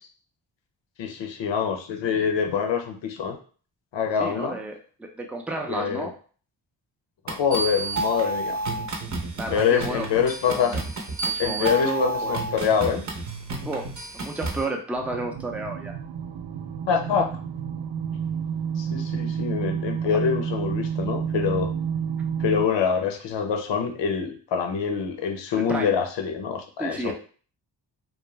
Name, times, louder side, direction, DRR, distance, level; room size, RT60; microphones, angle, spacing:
voice 1, 1.0-3.4 3.9-4.6 5.7-6.1 7.2-8.6 9.5-10.8 11.4-13.1 16.9-17.3 18.8-21.7 22.4-27.1, left 7 dB, 75° left, 4 dB, 0.7 m, -25 dB
voice 2, 4.2-6.1 9.4-10.8 11.3-12.4 13.6-13.9 14.1-15.9 25.5-26.0 26.8-27.1, right 2 dB, 5° right, 1 dB, 0.5 m, -32 dB
sound 1, 7.3-14.6, right 2 dB, 40° right, 0.7 m, -30 dB
sound 2, 15.0-22.7, right 7 dB, 80° right, 0.5 m, -30 dB
2.4 x 2.2 x 3.1 m, 0.41 s
cardioid pair, 60°, 44 cm